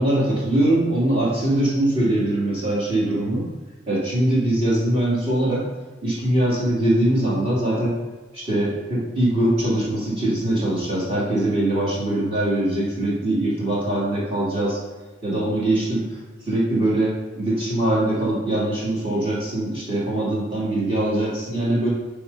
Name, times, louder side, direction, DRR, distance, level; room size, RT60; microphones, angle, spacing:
voice 1, 0.0-3.4 3.9-5.7 6.0-8.0 8.3-14.8 15.2-16.0 16.5-21.9, right 1 dB, 30° right, -7 dB, 2.7 m, -22 dB
9.8 x 3.7 x 5.6 m, 1.2 s
head